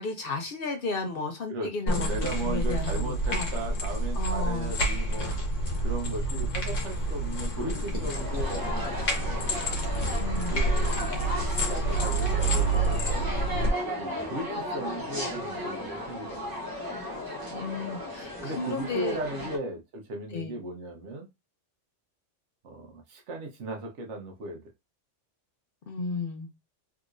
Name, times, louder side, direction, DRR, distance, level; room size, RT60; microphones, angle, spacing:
voice 1, 0.0-3.5 4.2-4.7 10.1-10.5 17.5-19.5 20.3-20.6 25.9-26.5, left 3 dB, 60° left, 0.7 m, -34 dB
voice 2, 1.5-5.3 5.8-9.6 10.3-13.3 14.0-16.7 18.4-21.3 22.6-24.7, right 1 dB, 70° right, 1.1 m, -37 dB
sound 1, 1.9-13.7, right 2 dB, 80° left, 1.4 m, -28 dB
sound 2, 8.1-19.6, left 1 dB, 25° right, 0.6 m, -35 dB
3.6 x 2.9 x 2.4 m
omnidirectional pair, 1.3 m